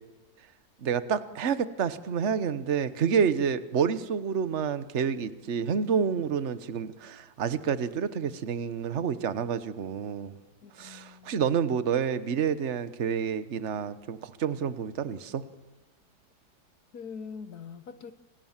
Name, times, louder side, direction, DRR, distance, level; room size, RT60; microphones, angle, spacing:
voice 1, 0.8-10.4 10.8-15.4, right 7 dB, 50° right, 13 dB, 1.4 m, -29 dB
voice 2, 10.6-11.5 16.9-18.1, left 6 dB, 70° left, 11 dB, 1.7 m, -43 dB
29.0 x 27.5 x 7.4 m, 1.1 s
omnidirectional pair, 1.7 m